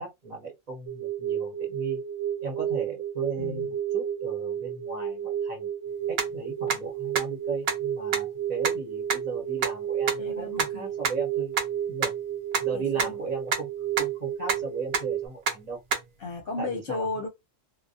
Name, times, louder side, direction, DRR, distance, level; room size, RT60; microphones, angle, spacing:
voice 1, 0.0-2.0 2.4-5.7 6.1-11.5 11.9-12.1 12.6-13.7 14.0-15.8 16.6-17.1, right 4 dB, 40° right, 0.8 m, -36 dB
sound 1, 0.9-15.3, right 9 dB, 85° right, 1.0 m, -32 dB
sound 2, 6.2-6.3 6.7-6.8 7.1-7.2 7.7-7.8 8.1-8.2 8.6-8.7 9.1-9.2 9.6-9.7 10.1-10.2 10.6-10.7 11.0-11.1 11.6-11.7 12.0-12.1 12.5-12.6 13.0-13.1 13.5-13.6 14.0-14.1 14.5-14.6 14.9-15.0 15.5-15.6 15.9-16.0, right 5 dB, 65° right, 0.5 m, -25 dB
voice 2, 10.2-10.9 12.7-13.2 16.2-17.3, left 3 dB, 50° left, 0.8 m, -34 dB
2.2 x 2.1 x 2.6 m
omnidirectional pair, 1.4 m